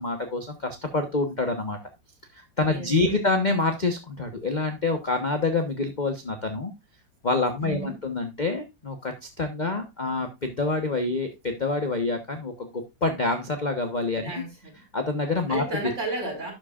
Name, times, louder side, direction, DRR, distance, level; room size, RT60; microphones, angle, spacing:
voice 1, 0.0-1.8 2.3-6.7 7.2-14.4 14.9-15.6, left 3 dB, 30° left, 1.1 m, -27 dB
voice 2, 2.6-3.2 7.6-7.9 14.2-14.8 15.5-16.5, right 2 dB, 40° right, 5.3 m, -33 dB
12.0 x 7.9 x 2.4 m
omnidirectional pair, 2.0 m